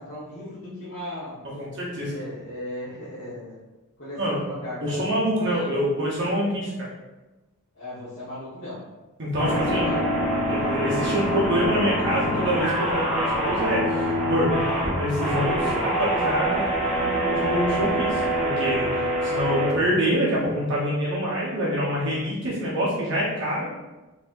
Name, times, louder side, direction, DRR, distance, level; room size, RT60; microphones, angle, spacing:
voice 1, 0.0-1.4 1.9-3.6 4.0-5.1 5.4-5.7 7.7-8.8 9.4-10.1 10.4-10.7, left 1 dB, 55° left, -12 dB, 1.3 m, -37 dB
voice 2, 1.6-2.1 4.2-4.4 4.8-6.9 9.2-9.9 10.5-14.5 15.0-23.7, equal, 55° right, -6 dB, 1.0 m, -26 dB
sound 1, 9.4-19.7, equal, ahead, 1.4 m, -25 dB
4.1 x 3.3 x 2.6 m, 1.1 s
head